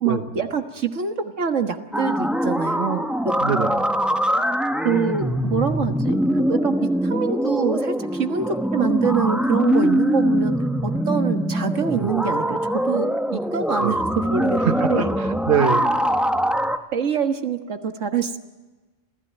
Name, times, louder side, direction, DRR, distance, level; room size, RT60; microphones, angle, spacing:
voice 1, 0.0-3.4 4.8-15.1 16.9-18.4, right 6 dB, 75° right, 6 dB, 1.8 m, -25 dB
sound 1, 1.9-16.8, equal, ahead, 1.0 m, -23 dB
voice 2, 3.4-3.8 11.9-12.2 13.8-14.0 14.6-15.9, right 8 dB, 50° right, 8 dB, 1.3 m, -24 dB
27.5 x 16.0 x 9.9 m, 1.2 s
omnidirectional pair, 1.3 m